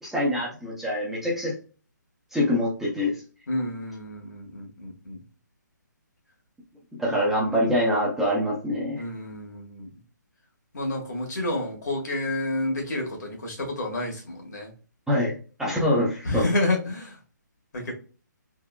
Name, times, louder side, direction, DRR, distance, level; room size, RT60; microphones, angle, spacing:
voice 1, 0.0-1.5 2.3-3.2 7.0-9.0 15.1-15.3 15.6-16.5, left 1 dB, 5° right, -6 dB, 0.5 m, -24 dB
voice 2, 3.5-5.2 9.0-9.9 10.7-14.7 16.2-17.1 17.7-17.9, left 2 dB, 65° left, -1 dB, 1.4 m, -29 dB
3.6 x 2.1 x 2.2 m, 0.36 s
hypercardioid pair, 150°, 10 cm